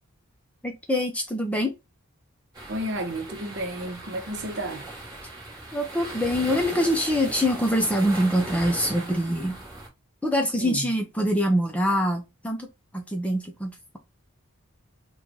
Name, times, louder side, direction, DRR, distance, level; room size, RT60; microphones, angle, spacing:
voice 1, 0.6-1.7 5.7-9.5 10.2-12.7 12.9-14.0, equal, 5° left, 0.5 m, -24 dB
sound 1, 2.5-9.9, right 2 dB, 20° right, 1.2 m, -38 dB
voice 2, 2.7-4.8 10.6-10.9, right 1 dB, 55° right, 0.7 m, -32 dB
3.1 x 2.3 x 3.7 m
head